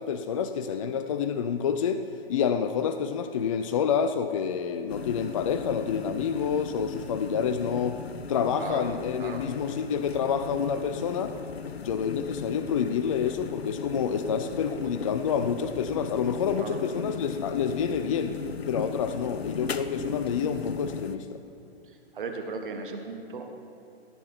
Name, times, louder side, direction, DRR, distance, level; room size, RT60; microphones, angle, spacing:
voice 1, 0.0-2.0 2.3-8.0 8.3-11.4 11.8-18.4 18.7-21.4, left 7 dB, 35° left, 9 dB, 0.4 m, -28 dB
sound 1, 4.9-21.2, left 6 dB, 75° left, 0.7 m, -37 dB
voice 2, 22.1-23.5, right 4 dB, 55° right, 4 dB, 1.4 m, -36 dB
17.5 x 7.6 x 4.4 m, 2.8 s
figure-of-eight pair, 120°, 32 cm